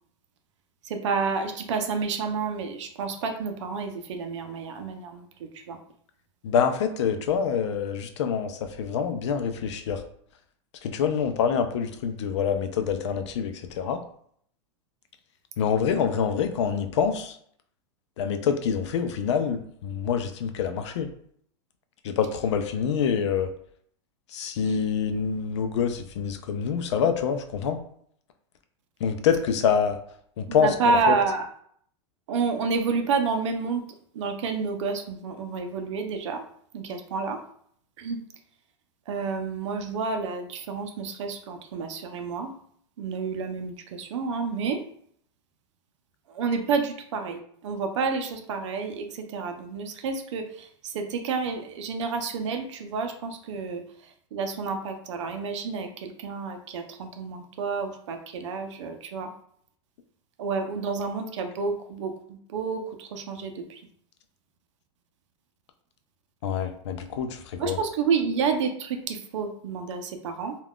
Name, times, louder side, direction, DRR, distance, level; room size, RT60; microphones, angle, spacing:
voice 1, 0.8-5.8 30.5-31.5 32.3-33.9 34.1-36.4 36.7-37.4 38.0-38.2 39.1-42.5 43.0-44.8 46.3-59.3 60.4-63.8 67.6-70.6, right 5 dB, 75° right, 6 dB, 0.5 m, -29 dB
voice 2, 6.4-10.0 10.8-14.0 15.6-17.4 18.2-21.1 22.0-23.5 24.3-27.8 29.0-30.0 30.4-30.7 31.1-31.2 66.4-67.8, left 7 dB, 65° left, 7 dB, 0.5 m, -26 dB
2.3 x 2.3 x 3.5 m, 0.63 s
supercardioid pair, 175°, 16 cm